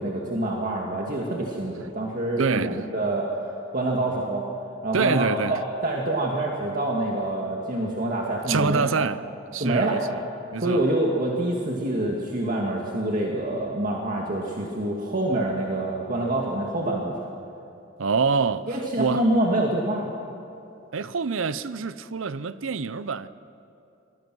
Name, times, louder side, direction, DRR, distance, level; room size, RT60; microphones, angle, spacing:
voice 1, 0.0-4.4 4.8-9.0 9.6-10.0 10.6-17.2 18.7-20.1, right 1 dB, 40° right, 2.0 m, -26 dB
voice 2, 2.4-2.8 4.9-5.6 8.5-10.2 10.5-10.8 18.0-19.2 20.9-23.3, right 5 dB, 75° right, 0.7 m, -26 dB
26.5 x 20.5 x 6.2 m
head